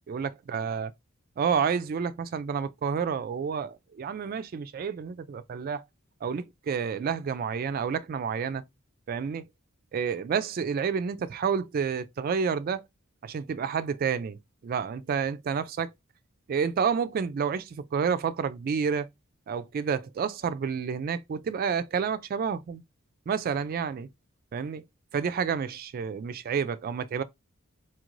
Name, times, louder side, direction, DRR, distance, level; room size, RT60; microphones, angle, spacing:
voice 1, 0.1-0.9 1.4-5.8 6.2-8.6 9.1-9.4 9.9-12.9 13.2-14.4 14.6-15.9 16.5-19.1 19.5-22.8 23.3-24.1 24.5-24.8 25.1-27.2, right 6 dB, 45° right, 0.3 m, -29 dB
4.3 x 2.5 x 3.0 m
head